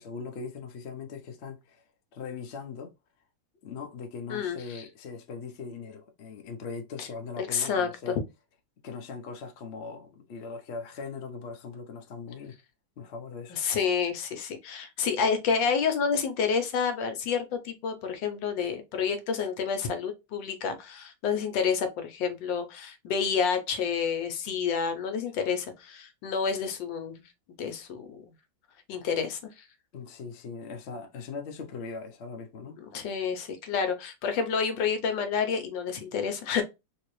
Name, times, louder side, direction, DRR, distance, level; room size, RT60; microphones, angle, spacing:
voice 1, 0.0-1.8 2.1-2.9 3.6-8.2 8.8-12.6 13.0-13.6 25.4-25.5 29.9-32.8, left 5 dB, 60° left, 0.7 m, -40 dB
voice 2, 4.3-4.9 7.0-7.1 7.4-8.2 13.5-27.2 27.6-28.2 28.9-29.6 32.8-36.6, left 6 dB, 80° left, 1.4 m, -29 dB
3.6 x 2.9 x 3.0 m
omnidirectional pair, 2.0 m